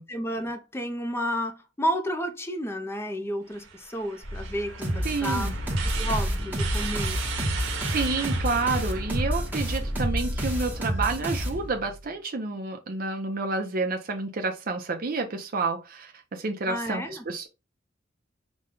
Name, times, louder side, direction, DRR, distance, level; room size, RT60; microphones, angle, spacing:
voice 1, 0.1-5.5 6.0-7.2 16.7-17.2, equal, 15° left, 0.5 m, -31 dB
sound 1, 3.5-10.0, right 6 dB, 85° right, 0.9 m, -37 dB
sound 2, 4.2-11.1, equal, 85° left, 1.4 m, -35 dB
sound 3, 4.8-12.0, equal, 10° right, 0.9 m, -30 dB
voice 2, 5.0-5.5 7.9-17.5, right 3 dB, 50° right, 0.6 m, -29 dB
5.1 x 2.2 x 3.7 m
head